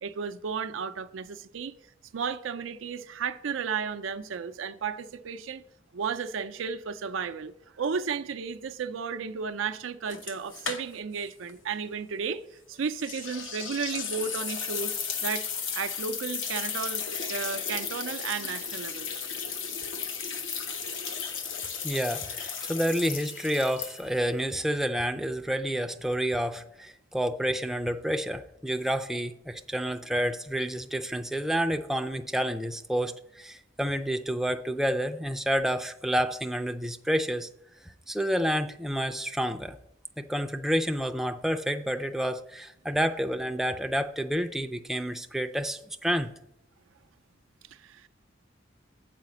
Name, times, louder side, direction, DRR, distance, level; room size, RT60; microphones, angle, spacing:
voice 1, 0.0-1.7 2.1-5.6 5.9-12.4 12.7-14.9 15.2-17.0 17.3-19.2 47.7-48.1, right 6 dB, 85° right, 0.5 m, -33 dB
sound 1, 10.1-11.2 11.5-11.6 13.0-24.3, left 6 dB, 85° left, 0.9 m, -35 dB
voice 2, 21.8-37.5 37.8-39.8 40.2-46.3, equal, ahead, 0.4 m, -29 dB
7.6 x 4.9 x 7.0 m
head